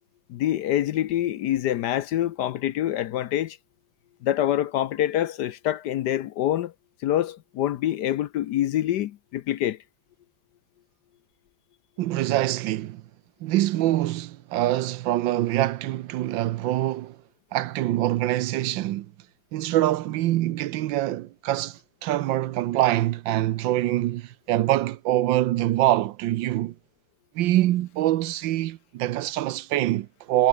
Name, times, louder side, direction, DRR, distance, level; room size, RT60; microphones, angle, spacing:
voice 1, 0.3-3.6 4.2-6.7 7.0-9.8, left 12 dB, 70° left, 1.1 m, -26 dB
voice 2, 12.0-13.0 13.4-17.2 17.5-19.1 19.5-26.7 27.3-30.5, right 14 dB, 75° right, 1.4 m, -24 dB
omnidirectional pair, 2.1 m